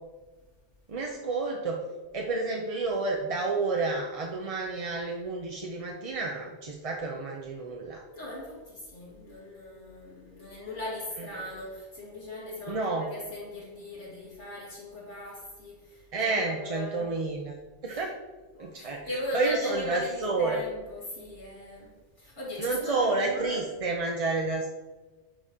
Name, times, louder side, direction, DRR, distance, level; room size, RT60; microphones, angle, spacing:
voice 1, 0.9-1.8 2.1-8.0 12.7-13.1 16.1-17.5 17.8-18.1 18.6-19.1 19.3-20.6 22.6-24.7, right 3 dB, 35° right, 0 dB, 0.6 m, -30 dB
voice 2, 8.1-17.1 17.9-18.0 18.5-23.8, left 1 dB, 75° left, -6 dB, 2.2 m, -39 dB
9.9 x 4.2 x 3.6 m, 1.2 s
omnidirectional pair, 1.2 m